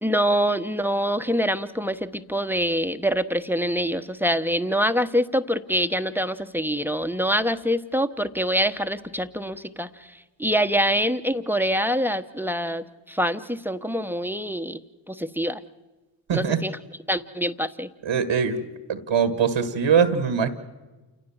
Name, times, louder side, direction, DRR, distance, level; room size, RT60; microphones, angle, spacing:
voice 1, 0.0-10.1 10.4-14.8 15.1-15.6 16.3-16.8 17.1-17.9, equal, 5° right, 10 dB, 1.1 m, -25 dB
voice 2, 18.0-18.6 18.9-20.5, right 6 dB, 75° right, 11 dB, 1.7 m, -22 dB
28.0 x 18.0 x 7.3 m, 1.2 s
supercardioid pair, 45°, 47 cm